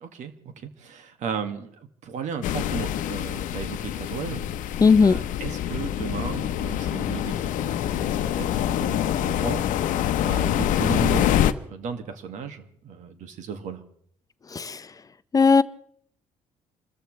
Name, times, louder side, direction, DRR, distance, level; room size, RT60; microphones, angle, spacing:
voice 1, 0.0-9.6 10.2-11.3 11.6-13.8, right 6 dB, 65° right, 7 dB, 2.0 m, -35 dB
sound 1, 2.4-11.5, left 11 dB, 75° left, 0.9 m, -25 dB
voice 2, 4.8-5.2 14.5-14.8 15.3-15.6, left 5 dB, 25° left, 14 dB, 0.6 m, -17 dB
28.5 x 14.0 x 3.3 m, 0.65 s
cardioid pair, 115°, 13 cm